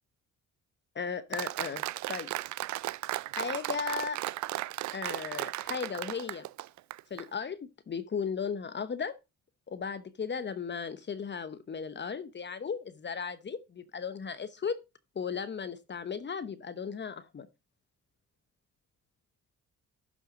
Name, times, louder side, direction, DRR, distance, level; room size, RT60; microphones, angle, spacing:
voice 1, 0.9-1.8 2.1-2.3 3.4-4.2 4.9-6.5 7.1-9.2 9.7-14.8 15.1-17.5, left 6 dB, 35° left, 1.0 m, -36 dB
Applause, 1.3-7.2, right 16 dB, 70° right, 0.5 m, -36 dB
12.0 x 6.2 x 3.7 m
cardioid pair, 90°, 30 cm